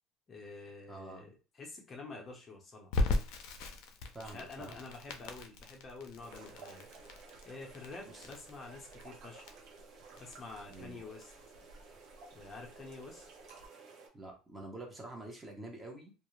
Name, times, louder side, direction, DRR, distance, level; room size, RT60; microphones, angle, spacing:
voice 1, 0.3-2.9 4.2-6.9 7.4-9.5 10.2-11.3 12.3-13.2, left 3 dB, 30° left, 1 dB, 0.7 m, -48 dB
voice 2, 0.9-1.3 4.1-4.8 8.1-8.3 10.7-11.1 14.1-16.1, right 2 dB, 20° right, 1 dB, 0.8 m, -47 dB
Crackle, 2.9-13.7, left 2 dB, 75° left, 0.5 m, -39 dB
sound 1, 6.2-14.1, right 4 dB, 60° right, 0.8 m, -54 dB
2.3 x 2.0 x 3.0 m, 0.34 s
cardioid pair, 120°, 0 cm